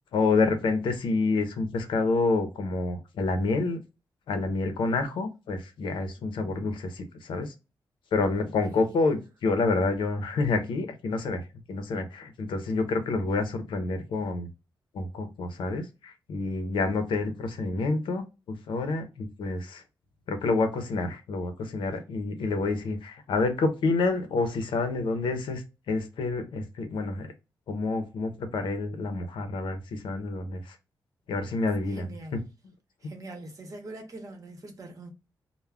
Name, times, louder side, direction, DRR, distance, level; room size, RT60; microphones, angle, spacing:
voice 1, 0.1-3.8 4.3-7.5 8.1-11.4 11.7-14.5 14.9-18.2 18.7-19.8 20.3-27.3 27.7-30.8 31.3-32.1 32.3-32.4, left 3 dB, 85° left, 0.5 m, -28 dB
voice 2, 31.9-32.4 33.0-35.1, right 2 dB, 45° right, 0.8 m, -43 dB
2.3 x 2.0 x 3.3 m
cardioid pair, 95°, 8 cm